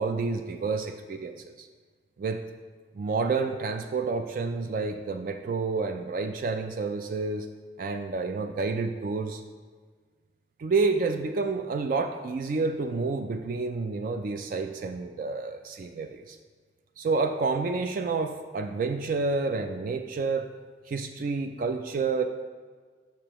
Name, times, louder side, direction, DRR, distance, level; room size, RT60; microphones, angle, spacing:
voice 1, 0.0-1.7 2.2-2.4 3.0-7.5 7.8-9.4 10.6-16.4 17.0-20.5 20.9-22.3, right 4 dB, 50° right, 7 dB, 0.3 m, -29 dB
6.7 x 6.6 x 3.0 m, 1.5 s
head